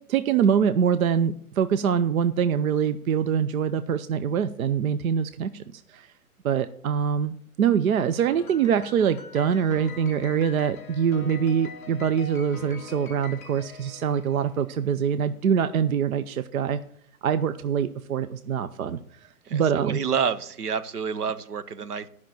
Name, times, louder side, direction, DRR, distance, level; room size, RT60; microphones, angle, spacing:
voice 1, 0.1-6.1 6.4-16.8 17.2-19.0 19.5-20.0, right 7 dB, 65° right, 12 dB, 0.7 m, -24 dB
Piano, 8.3-14.8, left 4 dB, 10° left, 0.5 m, -43 dB
voice 2, 19.4-22.1, right 7 dB, 85° right, 13 dB, 1.1 m, -29 dB
11.5 x 5.9 x 7.6 m, 0.64 s
hypercardioid pair, 155°, 45 cm